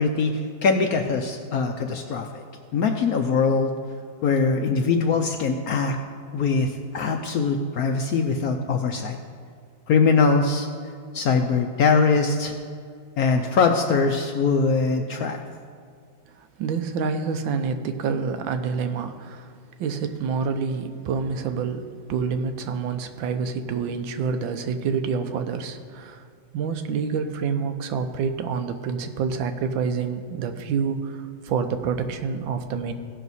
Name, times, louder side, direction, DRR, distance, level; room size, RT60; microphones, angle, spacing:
voice 1, 0.0-2.4 2.7-3.7 4.2-6.0 6.3-9.2 9.9-10.7 11.1-12.5 13.2-15.4, left 4 dB, 70° left, 4 dB, 0.8 m, -22 dB
voice 2, 16.4-19.5 19.8-21.8 22.1-26.2 26.5-32.9, right 5 dB, 90° right, 8 dB, 1.5 m, -27 dB
16.5 x 6.0 x 4.1 m, 2.2 s
omnidirectional pair, 2.1 m